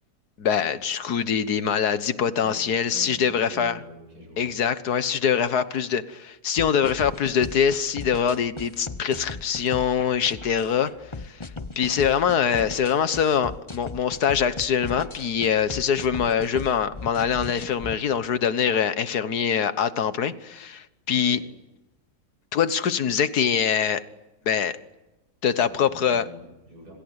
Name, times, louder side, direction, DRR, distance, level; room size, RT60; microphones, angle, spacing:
voice 1, 0.4-3.8 4.4-10.9 11.2-11.4 11.8-21.4 22.5-24.0 24.5-24.8 25.4-26.2, left 7 dB, 65° left, 13 dB, 1.7 m, -24 dB
voice 2, 2.4-4.6 21.1-21.5 25.4-26.9, equal, 60° right, 0 dB, 8.6 m, -45 dB
sound 1, 6.6-18.0, left 3 dB, 20° left, 0.8 m, -37 dB
27.0 x 26.5 x 8.2 m, 0.99 s
omnidirectional pair, 1.8 m